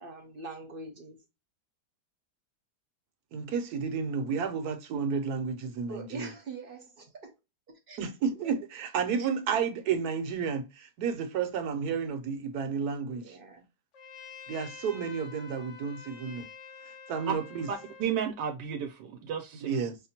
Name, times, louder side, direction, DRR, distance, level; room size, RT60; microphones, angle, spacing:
voice 1, 0.0-1.2 5.9-7.4 7.7-8.0 8.3-8.6 13.1-13.6, right 3 dB, 45° right, 0.7 m, -44 dB
voice 2, 3.3-6.3 8.0-13.4 14.5-16.5 17.1-17.7 19.6-20.0, right 6 dB, 70° right, 1.1 m, -31 dB
Trumpet, 13.9-18.2, left 5 dB, 55° left, 0.9 m, -48 dB
voice 3, 17.7-19.8, right 8 dB, 90° right, 1.2 m, -33 dB
5.7 x 2.1 x 2.7 m
omnidirectional pair, 1.8 m